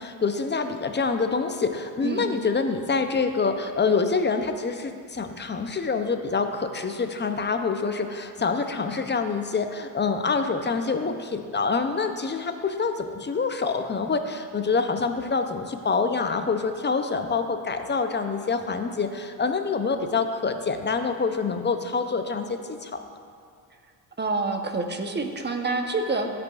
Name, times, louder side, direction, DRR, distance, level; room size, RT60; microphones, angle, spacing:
voice 1, 0.0-23.0, left 4 dB, 25° left, 7 dB, 0.6 m, -26 dB
voice 2, 24.2-26.3, right 3 dB, 20° right, 5 dB, 0.9 m, -27 dB
13.5 x 5.0 x 2.4 m, 2.3 s
supercardioid pair, 70°, 47 cm